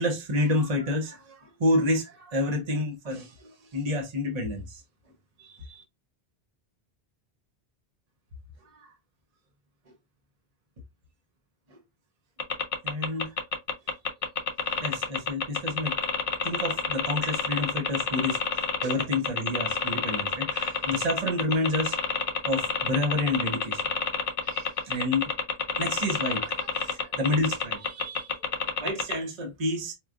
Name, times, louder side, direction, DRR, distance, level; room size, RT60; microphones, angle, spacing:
voice 1, 0.0-4.8 5.4-5.8 8.8-8.9 12.8-13.3 14.7-16.0 16.4-22.0 22.4-23.8 24.4-25.3 25.8-28.4 28.8-29.9, left 1 dB, 40° right, 0.8 m, -29 dB
sound 1, 12.4-29.1, left 6 dB, 45° left, 0.4 m, -28 dB
4.5 x 2.3 x 2.4 m
omnidirectional pair, 1.1 m